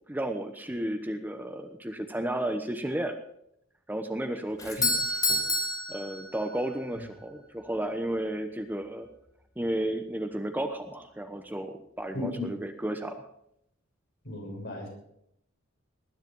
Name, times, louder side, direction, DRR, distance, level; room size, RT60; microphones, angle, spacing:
voice 1, 0.0-3.2 3.9-4.9 5.9-9.1 9.6-13.3, right 1 dB, 10° right, 7 dB, 1.0 m, -33 dB
Doorbell, 4.6-6.8, left 2 dB, 20° left, 3.0 m, -29 dB
voice 2, 12.1-12.5 14.2-14.9, left 2 dB, 60° left, 0 dB, 6.6 m, -35 dB
19.5 x 10.5 x 5.5 m, 0.75 s
head